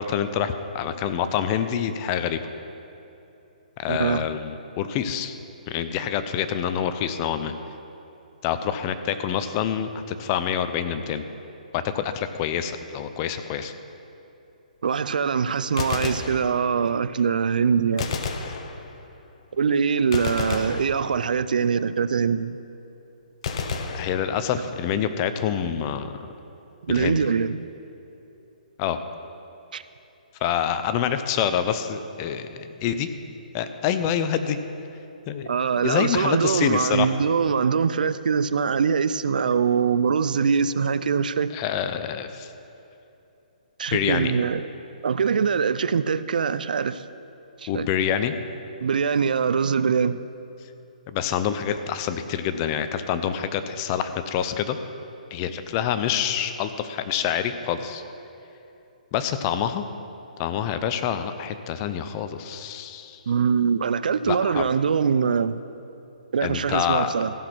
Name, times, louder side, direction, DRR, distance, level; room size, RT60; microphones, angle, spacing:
voice 1, 0.0-2.4 3.8-5.4 5.7-7.5 8.4-11.2 11.7-13.7 23.9-26.1 26.9-27.2 28.8-29.0 30.4-33.1 33.5-34.6 35.3-35.5 35.8-37.1 41.5-42.5 43.9-44.3 47.7-48.3 51.1-54.8 55.3-58.0 59.1-59.9 60.4-63.2 64.3-64.7 66.4-67.1, left 9 dB, 25° left, 10 dB, 0.5 m, -26 dB
voice 2, 3.9-4.3 14.8-18.1 19.5-22.6 26.8-27.7 29.7-29.8 35.5-41.5 43.8-44.7 45.0-47.0 47.6-47.9 48.8-50.2 63.3-65.6 66.3-67.3, right 6 dB, 75° right, 14 dB, 0.4 m, -23 dB
Gunshot gunfire, 15.6-17.0 18.0-19.2 20.1-21.5 23.4-24.8, left 5 dB, 45° left, 0.8 m, -31 dB
14.5 x 6.1 x 6.0 m, 2.9 s
hypercardioid pair, 155°, 5 cm